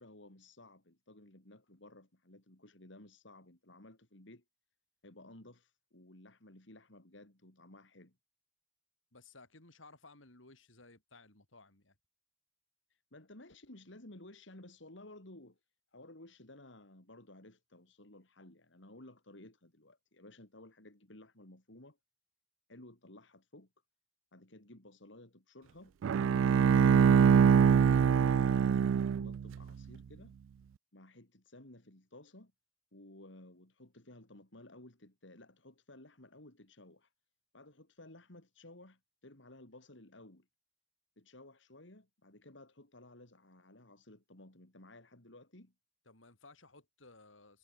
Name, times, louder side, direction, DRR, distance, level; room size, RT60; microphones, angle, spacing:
voice 1, 0.0-4.4 5.0-8.2 12.9-15.6 15.9-22.0 22.7-23.7 24.3-26.0 26.6-30.3 30.9-32.5 32.9-37.1 37.5-40.5 41.2-45.7, left 1 dB, 70° left, 3.6 m, -56 dB
voice 2, 9.1-11.9 46.1-47.6, left 3 dB, 85° left, 5.3 m, -58 dB
Bowed string instrument, 26.0-29.6, right 7 dB, 80° right, 0.3 m, -24 dB
head